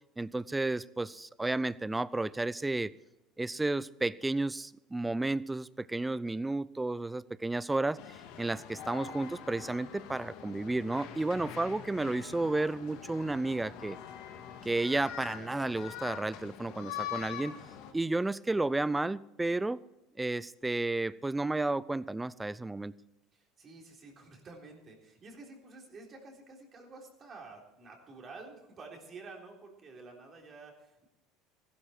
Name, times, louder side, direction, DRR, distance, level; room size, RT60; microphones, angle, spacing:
voice 1, 0.2-2.9 3.4-14.0 14.6-17.5 17.9-19.8 20.2-22.9, right 2 dB, 10° right, 20 dB, 0.5 m, -32 dB
sound 1, 8.0-17.9, left 10 dB, 70° left, 1.8 m, -44 dB
voice 2, 23.3-31.1, right 3 dB, 35° right, 1 dB, 3.6 m, -50 dB
15.0 x 12.5 x 4.5 m, 0.92 s
supercardioid pair, 95°, 0 cm